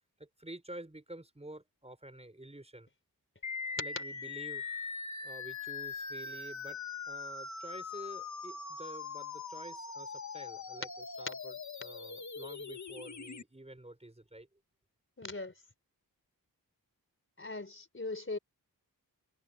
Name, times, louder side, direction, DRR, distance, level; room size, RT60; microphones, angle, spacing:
voice 1, 0.2-2.9 3.7-4.6 5.2-6.8 7.1-10.9 11.2-14.5, right 1 dB, 15° right, 5.2 m, -49 dB
sound 1, 3.4-13.4, left 5 dB, 50° left, 1.5 m, -42 dB
voice 2, 15.2-15.5 17.4-18.4, left 3 dB, 35° left, 4.2 m, -39 dB
wide cardioid pair, 80°, 37 cm